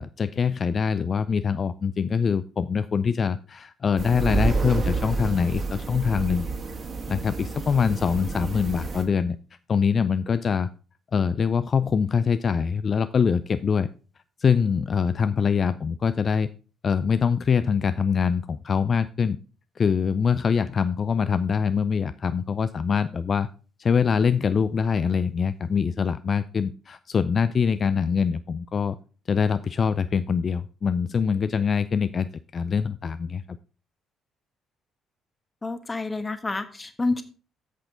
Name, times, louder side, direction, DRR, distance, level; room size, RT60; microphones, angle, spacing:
voice 1, 0.0-6.5 7.1-9.4 9.7-10.7 11.1-13.9 14.4-16.5 16.8-19.4 19.8-23.5 23.8-29.0 29.3-33.6, left 6 dB, 40° left, 13 dB, 0.3 m, -24 dB
sound 1, 4.0-9.0, right 3 dB, 40° right, 1.8 m, -29 dB
voice 2, 35.6-37.2, left 3 dB, 25° left, 9 dB, 1.3 m, -28 dB
8.2 x 7.8 x 3.9 m, 0.37 s
figure-of-eight pair, 45°, 0 cm